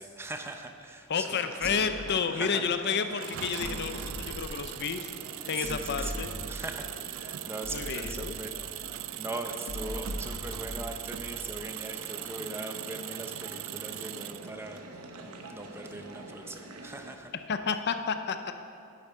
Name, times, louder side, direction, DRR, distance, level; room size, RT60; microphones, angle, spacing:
voice 1, 0.0-1.3 1.6-2.0 2.3-2.6 5.5-8.8 9.1-17.3, right 2 dB, 10° right, 5 dB, 0.6 m, -41 dB
voice 2, 1.1-5.1 5.5-6.3 7.7-8.4 17.5-18.5, left 6 dB, 50° left, 8 dB, 0.6 m, -30 dB
sound 1, 1.2-17.2, right 2 dB, 85° right, 0.9 m, -47 dB
sound 2, 1.6-2.1 3.6-4.6 5.6-6.9 7.6-9.0 9.7-11.6, left 1 dB, 75° left, 1.3 m, -40 dB
Engine, 3.2-14.8, right 14 dB, 65° right, 0.3 m, -40 dB
10.5 x 8.9 x 5.6 m, 2.6 s
head